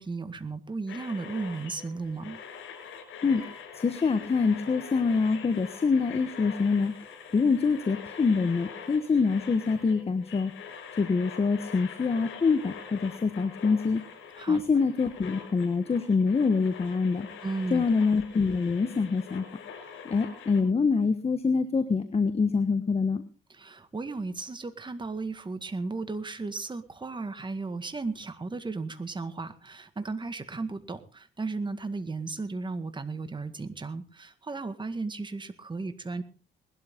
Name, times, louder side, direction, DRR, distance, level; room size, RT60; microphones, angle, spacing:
voice 1, 0.0-2.4 14.4-14.6 17.4-17.9 23.5-36.2, right 3 dB, 25° right, 9 dB, 1.9 m, -35 dB
sound 1, 0.9-20.6, left 6 dB, 85° left, 6.1 m, -44 dB
voice 2, 3.7-6.9 7.3-10.5 11.0-14.0 14.5-17.3 17.7-19.4 20.0-23.2, left 4 dB, 30° left, 10 dB, 1.4 m, -25 dB
20.0 x 12.5 x 3.8 m, 0.34 s
cardioid pair, 90°, 20 cm